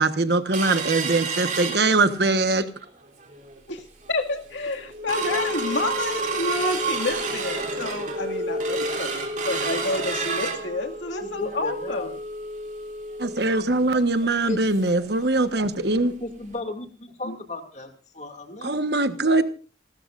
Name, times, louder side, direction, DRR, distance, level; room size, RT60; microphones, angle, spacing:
voice 1, 0.0-2.7 13.2-16.1 18.6-19.4, right 2 dB, 60° right, 10 dB, 1.3 m, -22 dB
sound 1, 0.5-2.4 2.8-2.9 3.2-3.6 4.1-4.2 4.5-15.0 15.4-15.5 15.8-16.0 16.5-16.6, right 3 dB, 45° right, 3.4 m, -30 dB
voice 2, 4.1-12.2 13.3-13.4 13.9-14.0 17.2-17.4, left 2 dB, 85° left, 3 dB, 2.2 m, -29 dB
voice 3, 11.2-12.1 14.5-14.6 16.2-18.8, left 2 dB, 40° left, 5 dB, 2.5 m, -35 dB
29.0 x 13.0 x 2.6 m, 0.35 s
head